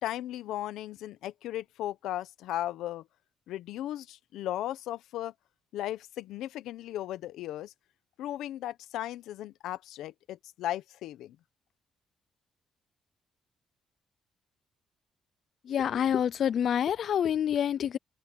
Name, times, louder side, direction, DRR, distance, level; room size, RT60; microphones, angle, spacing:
voice 1, 0.0-3.0 3.5-5.3 5.7-7.7 8.2-11.4, left 13 dB, 85° left, 1.0 m, -36 dB
voice 2, 15.7-18.0, left 9 dB, 60° left, 0.6 m, -27 dB
cardioid pair, 90°, 0 cm